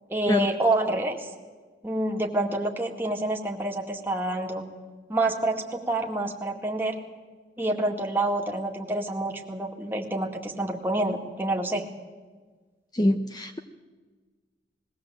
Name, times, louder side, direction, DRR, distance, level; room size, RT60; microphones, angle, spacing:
voice 1, 0.1-1.3 1.8-4.6 5.1-7.0 7.6-11.8, right 2 dB, 10° right, 1 dB, 2.1 m, -27 dB
voice 2, 12.9-13.6, left 1 dB, 25° left, 7 dB, 0.8 m, -24 dB
21.0 x 16.0 x 7.8 m, 1.4 s
head